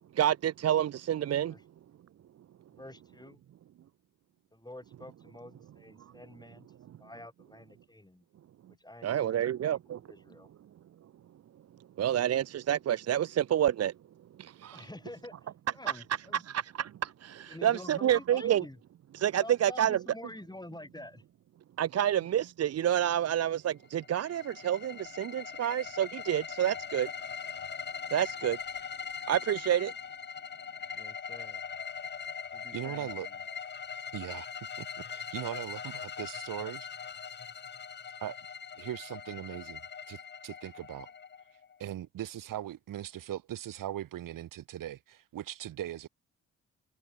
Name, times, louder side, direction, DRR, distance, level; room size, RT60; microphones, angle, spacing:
voice 1, 0.1-1.5 9.0-10.0 12.0-13.9 14.4-14.8 16.3-18.6 19.1-20.0 21.8-27.1 28.1-28.6 29.3-29.9, right 10 dB, 45° right, 0.6 m, -28 dB
voice 2, 2.7-3.4 4.5-8.3 8.7-9.5 9.7-10.5 14.7-16.4 17.5-18.8 19.4-21.2 22.1-22.3 30.9-31.6 32.5-33.4, left 1 dB, 10° left, 5.5 m, -48 dB
sound 1, 23.9-41.8, left 7 dB, 30° left, 0.7 m, -41 dB
voice 3, 32.7-33.3 34.1-34.5 34.8-36.9 38.2-38.4 38.8-39.8 40.1-41.1 41.8-46.1, right 12 dB, 65° right, 1.4 m, -39 dB
hypercardioid pair, 45°, 35 cm